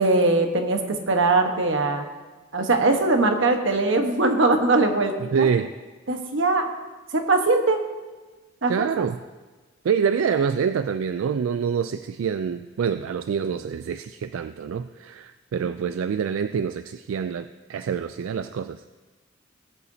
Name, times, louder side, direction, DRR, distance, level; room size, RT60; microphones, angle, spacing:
voice 1, 0.0-2.0 2.5-5.5 6.1-6.7 7.1-7.8 8.6-8.9, right 3 dB, 70° right, 4 dB, 1.2 m, -21 dB
voice 2, 5.3-5.7 8.7-9.2 9.8-18.8, right 7 dB, 90° right, 11 dB, 0.3 m, -26 dB
19.0 x 8.4 x 2.7 m, 1.3 s
head